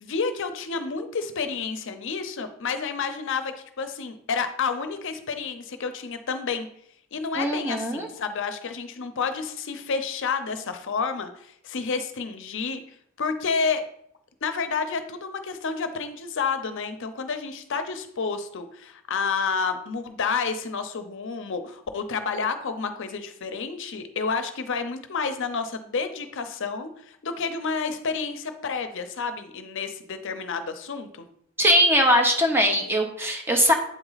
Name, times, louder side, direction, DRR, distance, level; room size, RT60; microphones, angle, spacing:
voice 1, 0.0-6.7 7.1-12.8 13.2-13.8 14.4-31.3, left 5 dB, 65° left, 8 dB, 0.6 m, -30 dB
voice 2, 7.3-8.1 31.6-33.7, equal, 10° right, 2 dB, 1.0 m, -21 dB
8.3 x 4.0 x 4.0 m, 0.69 s
head